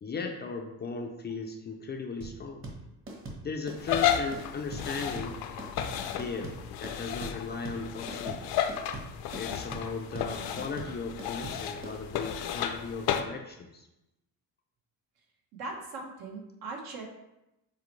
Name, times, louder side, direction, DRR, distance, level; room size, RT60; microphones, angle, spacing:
voice 1, 0.0-2.6 3.4-5.4 6.0-6.5 6.8-8.5 9.3-13.9, left 4 dB, 25° left, 3 dB, 0.4 m, -37 dB
sound 1, 2.2-12.0, right 2 dB, 35° right, 1.2 m, -41 dB
sound 2, 3.8-13.2, left 10 dB, 70° left, 0.6 m, -33 dB
voice 2, 15.6-17.0, right 3 dB, 70° right, 0 dB, 1.4 m, -39 dB
7.4 x 4.3 x 3.2 m, 0.92 s
cardioid pair, 165°, 38 cm